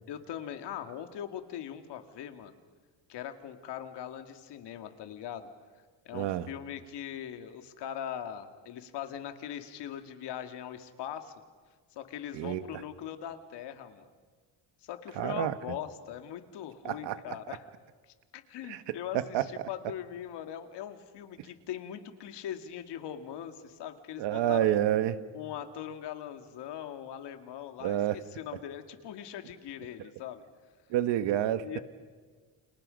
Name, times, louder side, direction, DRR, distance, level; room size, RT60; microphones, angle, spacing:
voice 1, 0.1-2.5 3.1-5.5 6.1-11.3 11.9-14.1 14.8-17.6 18.1-24.8 25.3-30.4 31.6-31.8, left 10 dB, 70° left, 7 dB, 2.2 m, -41 dB
voice 2, 6.1-6.5 12.3-12.6 15.2-15.6 16.8-17.2 18.7-19.5 24.2-25.2 27.8-28.2 30.9-31.7, right 12 dB, 80° right, 12 dB, 1.4 m, -28 dB
30.0 x 28.0 x 5.3 m, 1.5 s
cardioid pair, 170°, 43 cm